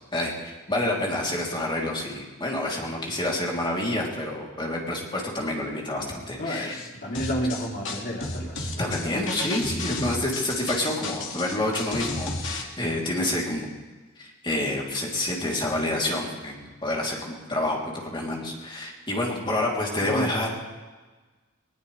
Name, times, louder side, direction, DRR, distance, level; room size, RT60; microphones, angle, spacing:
voice 1, 0.1-6.8 8.8-13.7 14.2-20.6, left 1 dB, 25° left, -2 dB, 3.3 m, -28 dB
voice 2, 6.4-9.3 20.0-20.3, equal, 50° left, -3 dB, 3.6 m, -31 dB
sound 1, 7.1-12.6, left 3 dB, 65° left, 2.3 m, -33 dB
20.5 x 20.0 x 3.4 m, 1.3 s
head